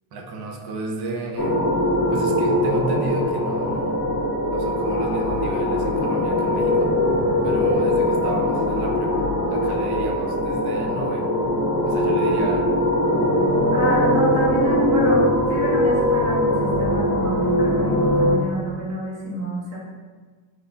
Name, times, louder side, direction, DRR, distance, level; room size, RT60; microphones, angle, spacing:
voice 1, 0.1-1.6 2.1-3.9 4.3-6.9 7.4-11.3 11.8-12.7, right 2 dB, 55° right, 2 dB, 0.5 m, -32 dB
sound 1, 1.4-18.4, left 1 dB, 40° left, 0.5 m, -21 dB
voice 2, 13.7-19.8, equal, 30° right, -7 dB, 0.9 m, -28 dB
3.2 x 2.1 x 2.4 m, 1.4 s
cardioid pair, 160°, 47 cm